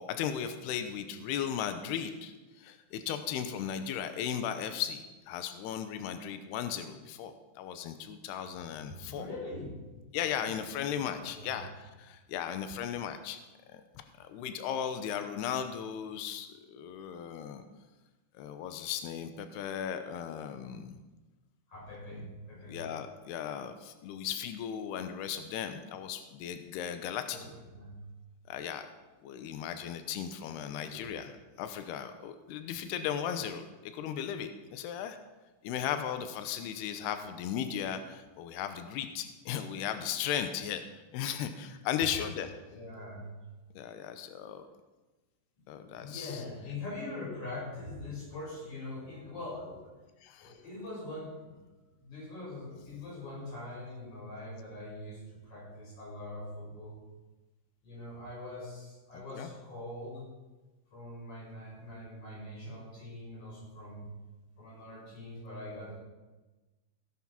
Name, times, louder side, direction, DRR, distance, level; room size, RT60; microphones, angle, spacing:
voice 1, 0.0-9.3 10.1-13.4 13.7-13.8 14.2-17.6 18.3-21.0 22.1-22.3 22.7-27.4 28.5-28.9 29.2-35.2 35.6-40.8 41.1-42.5 43.8-44.6 45.7-46.4 50.2-50.5 59.1-59.5, left 9 dB, 90° left, 8 dB, 2.3 m, -36 dB
voice 2, 9.1-9.8 10.3-10.5 10.9-11.6 21.7-22.8 27.3-28.0 30.7-31.2 42.7-43.3 45.6-45.7 45.9-49.9 50.4-51.6 52.0-57.0 57.8-60.3 60.9-64.1 64.6-66.0, left 2 dB, 30° left, -4 dB, 6.6 m, -43 dB
16.5 x 9.8 x 5.8 m, 1.2 s
omnidirectional pair, 5.7 m